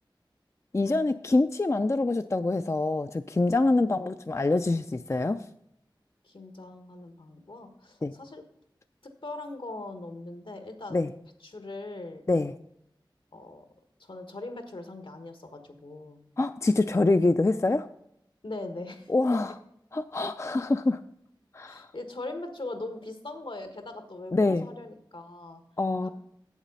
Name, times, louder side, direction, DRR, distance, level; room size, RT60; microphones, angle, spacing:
voice 1, 0.7-5.4 8.0-8.1 10.9-11.1 12.3-12.5 16.4-17.9 19.1-19.5 19.9-21.0 21.5-21.9 24.3-24.7 25.8-26.1, left 2 dB, 35° left, 9 dB, 0.4 m, -25 dB
voice 2, 6.2-8.4 9.2-11.1 11.4-12.2 13.3-13.6 14.0-16.2 18.4-19.1 21.6-25.6 26.0-26.1, left 2 dB, 80° left, 7 dB, 1.3 m, -40 dB
8.3 x 7.2 x 5.3 m, 0.75 s
wide cardioid pair, 45°, 9 cm